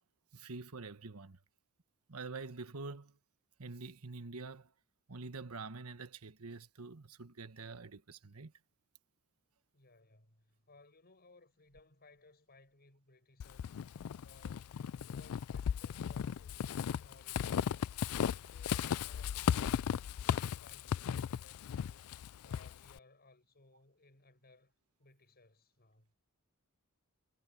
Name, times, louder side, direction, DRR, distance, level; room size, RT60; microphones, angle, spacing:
voice 1, 0.3-1.4 2.1-3.2 3.6-4.7 5.1-8.5, right 3 dB, 85° right, 1.3 m, -46 dB
voice 2, 9.7-13.8 14.2-17.9 18.3-24.7 25.0-26.1, left 2 dB, 45° left, 7.3 m, -63 dB
Walk footsteps / Squeak, 13.4-23.0, left 8 dB, 75° left, 0.4 m, -36 dB
head